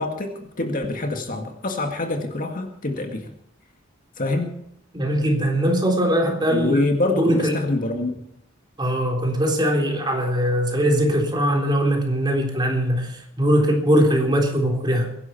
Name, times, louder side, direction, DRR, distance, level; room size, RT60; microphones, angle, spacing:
voice 1, 0.0-3.3 4.2-4.6 6.5-8.1, left 2 dB, 45° left, 3 dB, 2.0 m, -25 dB
voice 2, 4.9-6.8 7.2-7.5 8.8-15.1, equal, 20° right, 1 dB, 3.6 m, -21 dB
23.0 x 11.0 x 4.5 m, 0.75 s
head